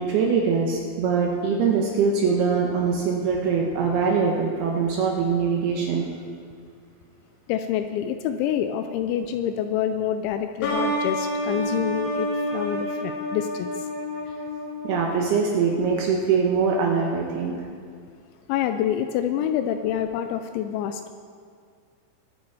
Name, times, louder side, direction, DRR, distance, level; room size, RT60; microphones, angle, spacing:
voice 1, 0.0-6.1 14.8-17.6, right 5 dB, 75° right, 0 dB, 2.5 m, -23 dB
voice 2, 7.5-13.7 18.5-21.1, left 9 dB, 85° left, 8 dB, 2.8 m, -27 dB
sound 1, 10.6-16.1, equal, 65° left, 4.1 m, -29 dB
21.5 x 8.5 x 4.8 m, 2.1 s
omnidirectional pair, 5.7 m